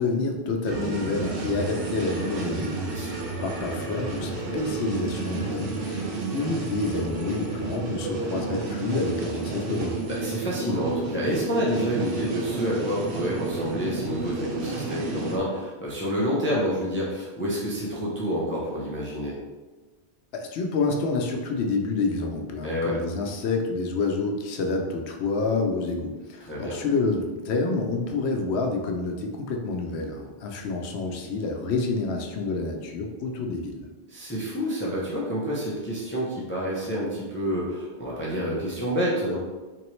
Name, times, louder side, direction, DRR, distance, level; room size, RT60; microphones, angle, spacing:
voice 1, 0.0-2.8 3.1-3.2 3.4-10.0 20.3-33.9, left 3 dB, 80° left, 2 dB, 0.9 m, -28 dB
sound 1, 0.7-15.4, right 3 dB, 60° right, 0.8 m, -31 dB
voice 2, 4.2-4.6 10.1-19.4 22.6-23.0 26.4-26.8 34.1-39.4, equal, 15° left, -6 dB, 0.5 m, -28 dB
3.7 x 2.9 x 3.1 m, 1.2 s
omnidirectional pair, 1.1 m